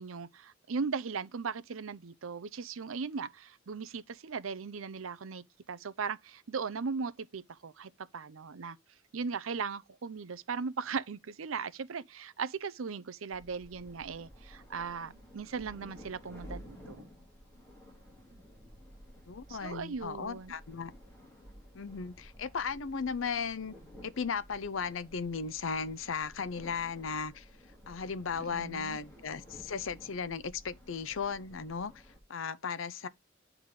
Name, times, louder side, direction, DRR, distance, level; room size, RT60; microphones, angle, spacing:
voice 1, 0.0-5.4 5.7-8.8 9.1-17.1 18.3-18.4 19.5-20.5 28.5-29.0, right 5 dB, 85° right, 0.6 m, -38 dB
sound 1, 13.3-32.2, equal, 15° left, 2.4 m, -53 dB
voice 2, 19.3-20.9 21.7-23.7 24.0-27.5 27.9-32.0 32.3-33.1, left 5 dB, 75° left, 0.6 m, -36 dB
9.5 x 3.6 x 4.8 m
head